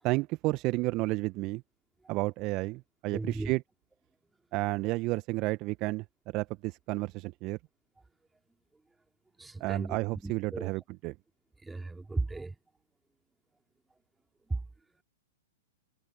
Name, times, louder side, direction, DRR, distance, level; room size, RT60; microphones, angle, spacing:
voice 1, 0.0-1.6 2.1-3.6 4.5-6.0 6.3-7.6 9.6-11.1, right 22 dB, 35° right, 1.2 m, -31 dB
voice 2, 3.1-3.5 9.4-10.7 11.6-12.5 14.5-14.6, right 3 dB, 5° right, 2.9 m, -35 dB
figure-of-eight pair, 105°, 0 cm